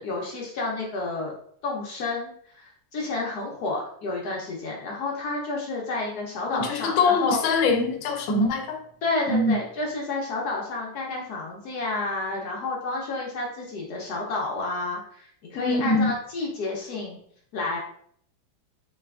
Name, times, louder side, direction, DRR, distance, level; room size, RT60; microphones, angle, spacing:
voice 1, 0.0-1.3 1.6-7.4 9.0-17.2 17.5-17.8, left 3 dB, 65° left, 1.1 m, -30 dB
voice 2, 6.5-8.8 9.3-9.6 15.5-16.1, left 3 dB, 85° left, 1.4 m, -23 dB
3.8 x 3.2 x 2.3 m
omnidirectional pair, 2.1 m